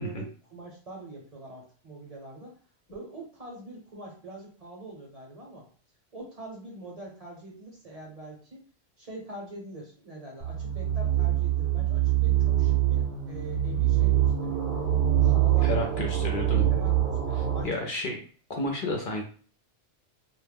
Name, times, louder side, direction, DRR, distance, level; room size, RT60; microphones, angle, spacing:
voice 1, 0.0-2.5 2.9-5.7 6.1-8.6 9.0-14.7 15.2-16.1 16.5-17.8, right 2 dB, 40° right, -3 dB, 0.8 m, -44 dB
sound 1, 10.4-17.6, right 11 dB, 70° right, 0.7 m, -24 dB
voice 2, 15.6-16.7 17.6-18.2 18.5-19.2, left 2 dB, 60° left, 1 dB, 0.6 m, -31 dB
2.2 x 2.1 x 3.3 m, 0.41 s
omnidirectional pair, 1.1 m